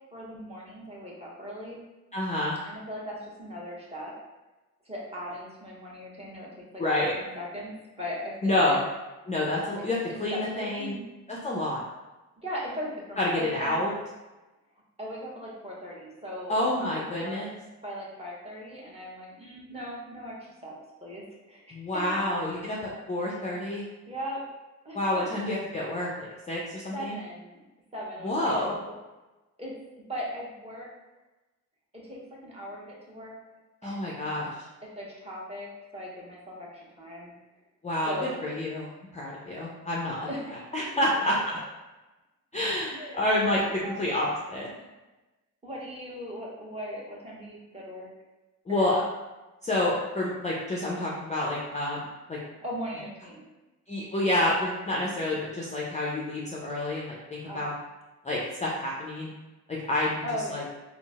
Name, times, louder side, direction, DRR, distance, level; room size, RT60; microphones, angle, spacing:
voice 1, 0.1-1.8 2.6-4.1 4.8-6.8 7.1-8.8 10.3-11.0 12.4-13.8 15.0-17.5 17.8-21.6 21.9-22.2 24.1-24.4 24.8-25.2 26.9-27.6 27.9-28.9 29.6-29.7 30.1-30.9 31.9-33.4 33.8-34.1 34.8-37.3 38.0-38.4 40.3-40.9 42.9-44.1 45.6-48.1 48.7-48.9 52.6-53.4 57.5-57.7 60.2-60.7, equal, 15° right, -5 dB, 1.1 m, -38 dB
voice 2, 2.1-2.6 6.8-7.1 8.4-8.8 9.3-11.0 11.3-11.8 13.2-13.9 16.5-17.5 21.7-23.8 24.9-27.2 28.2-28.8 33.8-34.5 37.8-38.9 39.1-40.3 40.7-41.4 42.5-43.6 44.0-44.7 48.7-49.0 49.6-52.4 53.9-57.7 58.2-59.3 59.9-60.1 60.5-60.6, left 1 dB, 15° left, -4 dB, 0.5 m, -28 dB
3.7 x 2.1 x 2.3 m, 1.1 s
hypercardioid pair, 45°, 43 cm